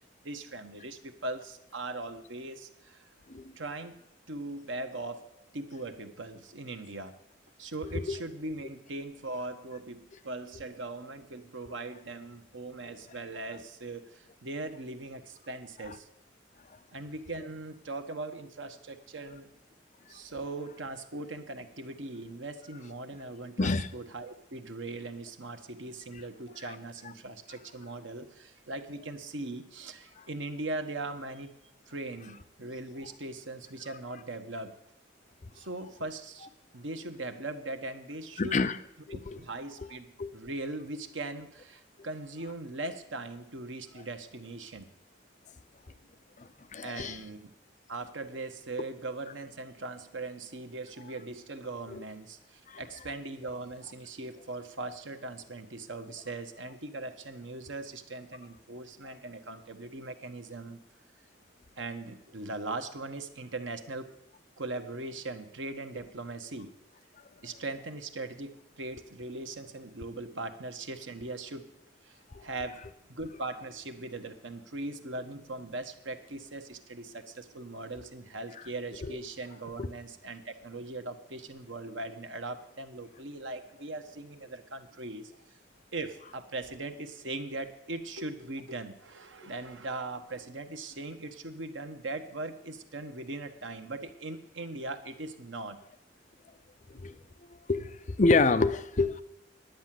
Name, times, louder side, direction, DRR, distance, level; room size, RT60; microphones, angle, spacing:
voice 1, 0.2-3.0 3.6-5.3 5.5-7.1 7.6-16.1 16.9-19.5 20.1-31.5 31.9-34.7 35.5-38.6 39.1-44.9 46.8-47.5 47.9-60.8 61.8-64.1 64.6-66.7 67.4-71.7 72.1-72.8 73.1-85.3 85.9-95.8, right 2 dB, 85° right, 1.2 m, -40 dB
voice 2, 38.4-38.8 39.1-39.4 40.2-40.3 46.7-47.2 52.7-52.8 79.8-79.9 96.9-97.1 97.7-99.2, left 3 dB, 40° left, 0.6 m, -27 dB
10.5 x 9.7 x 7.6 m
head